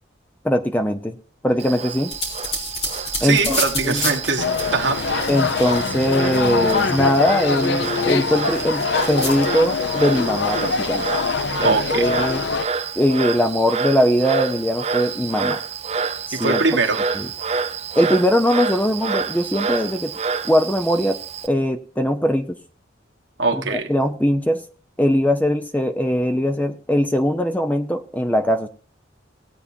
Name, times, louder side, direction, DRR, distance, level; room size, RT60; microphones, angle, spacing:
voice 1, 0.4-1.1 1.4-2.1 3.2-3.6 3.8-4.0 5.3-11.0 11.6-12.4 13.0-15.6 16.4-16.6 17.2-17.3 18.0-20.1 20.4-21.2 21.4-22.6 23.5-24.6 25.0-28.7, equal, 10° left, 0.7 m, -20 dB
Frog, 1.6-21.5, right 5 dB, 35° right, 0.5 m, -29 dB
sound 1, 2.1-7.1 7.5-9.5, left 1 dB, 35° left, 3.4 m, -30 dB
voice 2, 3.2-5.0 11.6-12.2 16.3-17.1 23.4-23.9, right 4 dB, 75° right, 1.4 m, -22 dB
sound 2, 4.4-12.7, left 4 dB, 65° left, 0.6 m, -23 dB
19.0 x 8.4 x 2.7 m
head